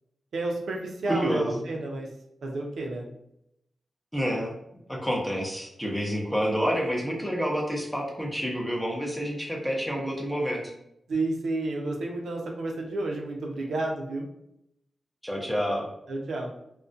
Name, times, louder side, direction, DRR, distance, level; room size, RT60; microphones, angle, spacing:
voice 1, 0.3-2.1 2.4-3.0 11.1-14.3 16.1-16.5, right 2 dB, 85° right, 0 dB, 0.4 m, -31 dB
voice 2, 1.1-1.6 4.1-4.5 4.9-10.6 15.2-15.9, equal, 5° left, -2 dB, 0.6 m, -28 dB
2.4 x 2.1 x 2.5 m, 0.79 s
wide cardioid pair, 120°, 0 cm